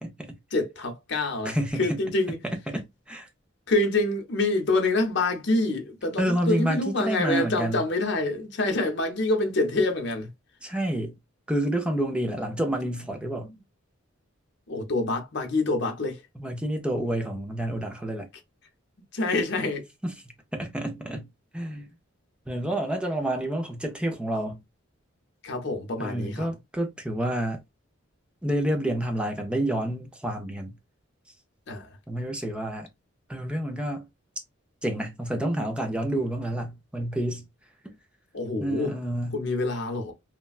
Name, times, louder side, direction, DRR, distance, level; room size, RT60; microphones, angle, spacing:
voice 1, 0.0-0.3 1.4-2.0 2.4-3.3 6.2-7.8 10.6-11.2 11.5-13.5 16.4-18.3 20.0-20.1 20.5-21.3 21.5-21.9 22.5-24.6 26.0-27.6 28.4-30.8 32.1-32.9 33.3-34.1 34.8-37.5 37.8-37.9 38.6-39.4, right 1 dB, 5° right, 0.5 m, -29 dB
voice 2, 0.5-2.4 3.7-10.3 14.7-16.2 19.1-19.8 25.4-26.5 31.7-32.0 38.3-39.0 39.3-40.1, left 2 dB, 55° left, 0.8 m, -26 dB
3.2 x 2.2 x 2.4 m
head